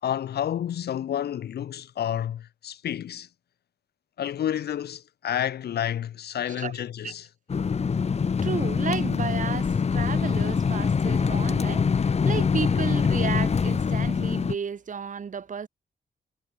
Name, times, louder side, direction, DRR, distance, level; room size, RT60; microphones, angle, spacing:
voice 1, 0.0-3.3 4.2-7.3, left 10 dB, 85° left, 3.8 m, -30 dB
sound 1, 7.5-14.6, left 5 dB, 40° left, 1.4 m, -24 dB
voice 2, 8.4-15.7, right 6 dB, 50° right, 3.5 m, -33 dB
cardioid pair, 100°, 16 cm